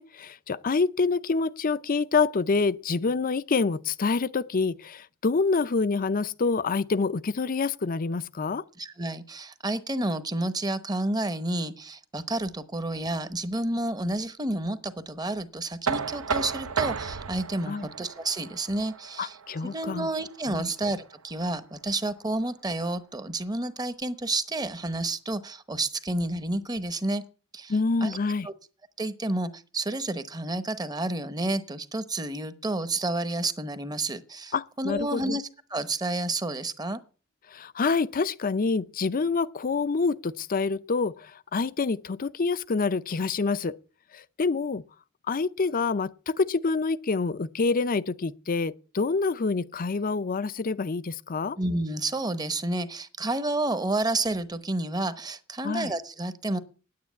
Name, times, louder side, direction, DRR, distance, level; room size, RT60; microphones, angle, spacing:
voice 1, 0.0-8.6 17.7-17.9 19.2-20.1 20.5-20.7 27.7-28.5 34.5-35.4 37.5-43.8 44.1-44.8 45.3-51.6 55.6-55.9, left 4 dB, 40° left, 0.6 m, -27 dB
voice 2, 8.8-19.4 19.6-27.2 27.5-27.7 28.0-28.2 28.4-28.5 29.0-35.4 35.7-37.0 51.6-56.6, right 2 dB, 20° right, 0.9 m, -30 dB
Knock, 15.9-21.7, right 6 dB, 80° right, 0.9 m, -34 dB
9.6 x 9.5 x 8.4 m
head